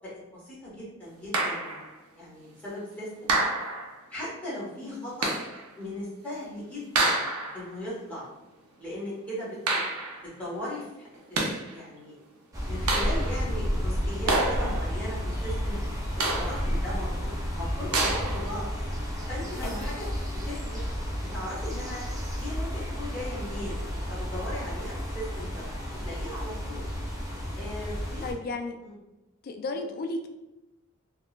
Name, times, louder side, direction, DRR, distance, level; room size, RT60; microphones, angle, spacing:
voice 1, 0.0-1.8 2.2-3.3 4.1-5.3 5.7-7.2 7.5-8.2 8.8-9.9 10.2-12.2 12.7-17.3 17.6-18.7 19.3-20.1 20.5-20.8 21.3-22.0 22.4-23.8 24.1-25.6 26.0-26.8 27.6-28.2 28.8-29.0 29.8-29.9, left 1 dB, 5° left, -9 dB, 1.2 m, -38 dB
sound 1, 1.3-1.9 3.3-4.0 5.2-5.7 6.9-7.7 9.7-10.3 11.1-11.8 12.9-13.5 14.3-15.0 16.2-16.8 17.9-18.5, right 2 dB, 90° right, 0.6 m, -28 dB
sound 2, 12.5-28.3, equal, 15° right, 0.5 m, -32 dB
voice 2, 19.6-20.0 28.2-28.8 29.4-30.3, left 2 dB, 45° left, 5 dB, 0.3 m, -34 dB
3.6 x 2.3 x 2.4 m, 0.98 s
head